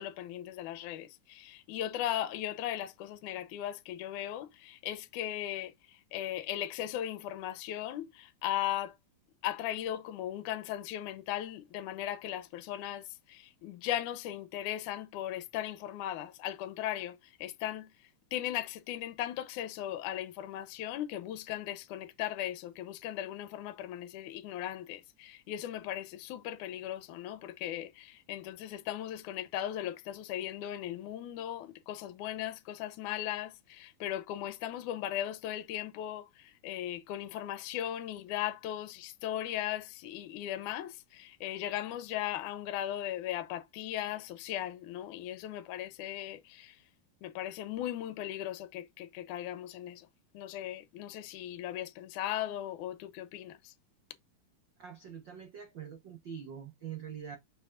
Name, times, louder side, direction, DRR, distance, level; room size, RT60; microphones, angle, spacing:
voice 1, 0.0-5.7 6.1-8.9 9.4-17.9 18.3-46.8 47.2-50.1 50.3-53.7, left 12 dB, 70° left, 2.3 m, -37 dB
voice 2, 54.8-57.4, right 8 dB, 85° right, 1.0 m, -44 dB
7.2 x 5.7 x 2.6 m
omnidirectional pair, 3.9 m